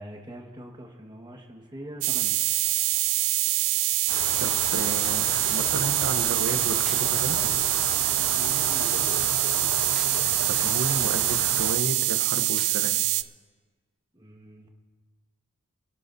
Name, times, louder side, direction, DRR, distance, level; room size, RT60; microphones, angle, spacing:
voice 1, 0.0-2.4 3.4-3.5 8.2-9.4 14.1-14.7, right 1 dB, 20° right, 1 dB, 1.5 m, -43 dB
sound 1, 2.0-13.2, right 18 dB, 85° right, 0.4 m, -25 dB
sound 2, 4.1-11.7, left 3 dB, 70° left, 1.5 m, -35 dB
voice 2, 4.4-7.6 10.5-13.0, right 3 dB, 60° right, 8 dB, 0.8 m, -33 dB
sound 3, 6.8-7.5 9.9-10.5 12.6-13.2, right 1 dB, ahead, 1.2 m, -44 dB
28.0 x 12.0 x 2.7 m, 1.3 s
head